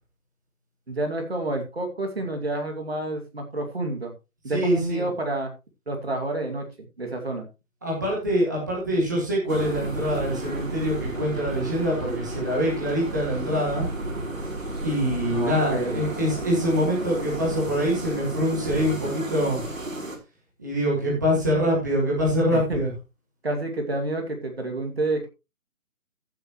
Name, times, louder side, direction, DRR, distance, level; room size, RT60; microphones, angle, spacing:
voice 1, 0.9-4.1 4.4-5.5 5.9-6.6 7.0-7.5 15.3-16.0 22.5-22.8 23.4-25.3, right 2 dB, 40° right, 3 dB, 2.4 m, -29 dB
voice 2, 4.5-5.1 7.8-13.9 14.8-19.6 20.6-22.9, equal, 10° right, -5 dB, 2.0 m, -24 dB
sound 1, 9.5-20.2, right 2 dB, 60° right, 3.6 m, -32 dB
15.5 x 7.8 x 3.1 m, 0.27 s
figure-of-eight pair, 180°, 45 cm